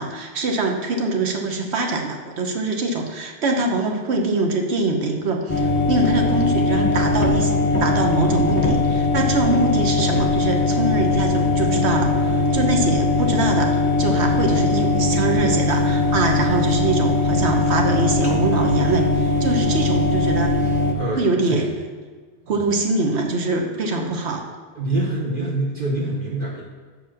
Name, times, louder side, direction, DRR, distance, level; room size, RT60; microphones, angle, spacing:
voice 1, 0.0-7.5 7.8-20.6 21.2-21.7 22.5-24.4, right 3 dB, 90° right, 2 dB, 1.2 m, -23 dB
sound 1, 5.5-20.9, left 2 dB, 20° left, 0.7 m, -20 dB
voice 2, 20.9-21.7 22.5-22.6 23.8-24.1 24.7-26.6, right 2 dB, 55° right, -4 dB, 1.2 m, -26 dB
7.0 x 4.9 x 6.4 m, 1.5 s
omnidirectional pair, 1.1 m